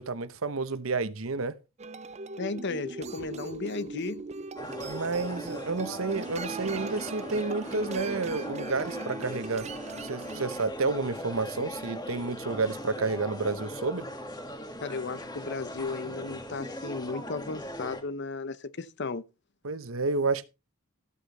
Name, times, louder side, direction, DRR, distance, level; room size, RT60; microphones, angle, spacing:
voice 1, 0.0-1.6 4.8-9.7 10.0-14.1 19.6-20.4, right 3 dB, 70° right, 1.0 m, -30 dB
sound 1, 1.8-10.6, right 3 dB, 30° right, 0.6 m, -40 dB
voice 2, 2.4-4.3 14.8-19.2, left 4 dB, 55° left, 0.8 m, -35 dB
sound 2, 4.6-18.0, equal, 20° left, 2.1 m, -39 dB
14.0 x 8.3 x 4.2 m
head